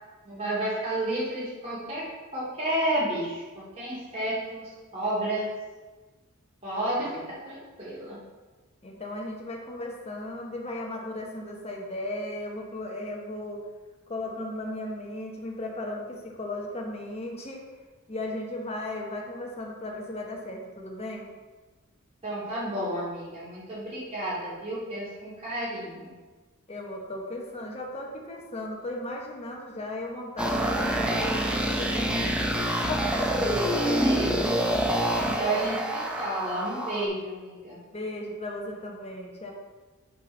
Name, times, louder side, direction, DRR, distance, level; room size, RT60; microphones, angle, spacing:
voice 1, 0.2-2.1 2.3-5.5 6.6-8.2 22.2-26.1 33.4-34.7 35.2-37.8, right 1 dB, 30° right, -10 dB, 2.2 m, -31 dB
voice 2, 8.8-13.6 14.1-17.6 18.1-21.2 26.7-33.9 35.3-35.7 37.9-39.5, left 1 dB, 30° left, 0 dB, 1.1 m, -36 dB
sound 1, 30.4-37.1, right 1 dB, 5° right, 0.6 m, -26 dB
6.1 x 4.4 x 5.3 m, 1.3 s
head